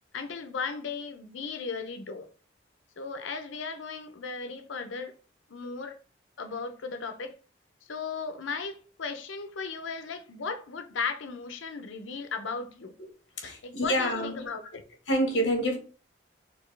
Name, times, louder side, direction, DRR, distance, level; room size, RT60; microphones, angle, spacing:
voice 1, 0.1-2.3 3.0-5.1 5.5-6.0 6.4-7.3 7.9-12.9 13.6-14.8, left 5 dB, 85° left, 0.6 m, -36 dB
voice 2, 13.4-14.5 15.1-15.8, equal, 70° left, 1.0 m, -27 dB
4.3 x 2.7 x 3.2 m
head